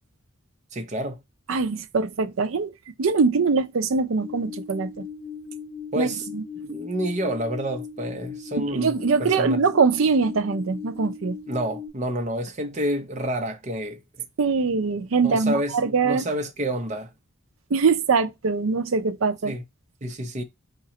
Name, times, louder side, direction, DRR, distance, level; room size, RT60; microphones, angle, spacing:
voice 1, 0.7-1.2 5.9-6.3 6.6-9.6 11.5-14.0 15.2-17.1 19.4-19.6 20.0-20.4, right 1 dB, 35° right, 0.7 m, -29 dB
voice 2, 1.5-2.7 3.0-5.1 6.0-6.4 8.6-11.4 14.4-16.2 17.7-19.6, right 4 dB, 70° right, 0.5 m, -23 dB
sound 1, 4.2-11.9, left 6 dB, 65° left, 1.6 m, -38 dB
3.8 x 2.9 x 4.1 m
head